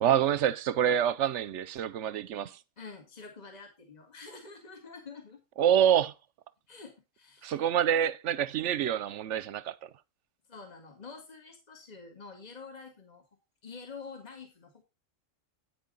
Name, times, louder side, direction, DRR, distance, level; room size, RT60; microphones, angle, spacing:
voice 1, 0.0-2.6 5.6-6.1 7.4-9.7, right 9 dB, 65° right, 0.9 m, -26 dB
voice 2, 2.8-5.4 6.7-7.5 10.5-13.2 13.6-14.8, left 4 dB, 30° left, 2.0 m, -47 dB
9.4 x 8.5 x 3.9 m
omnidirectional pair, 1.4 m